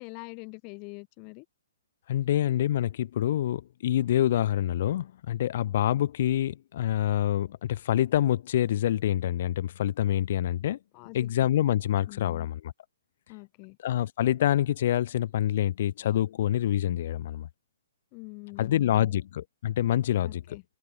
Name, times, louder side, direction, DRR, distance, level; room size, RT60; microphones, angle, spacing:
voice 1, 0.0-1.5 10.9-11.5 12.1-12.5 13.3-13.8 18.1-19.1 20.2-20.6, left 35 dB, 30° left, 0.9 m, -44 dB
voice 2, 2.1-10.8 11.1-12.7 13.8-17.5 18.6-20.4, left 12 dB, 50° left, 1.2 m, -26 dB
open air
hypercardioid pair, 155°, 0 cm